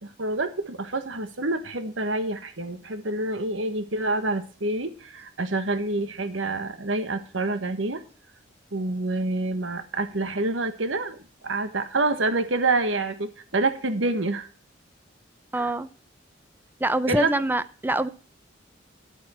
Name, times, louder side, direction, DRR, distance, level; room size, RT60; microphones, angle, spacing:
voice 1, 0.0-8.0 8.7-14.5 15.6-15.7 17.1-17.3, right 2 dB, 90° right, 1.4 m, -27 dB
voice 2, 15.5-15.9 16.8-18.1, right 1 dB, 10° right, 0.5 m, -25 dB
11.5 x 8.5 x 4.4 m
head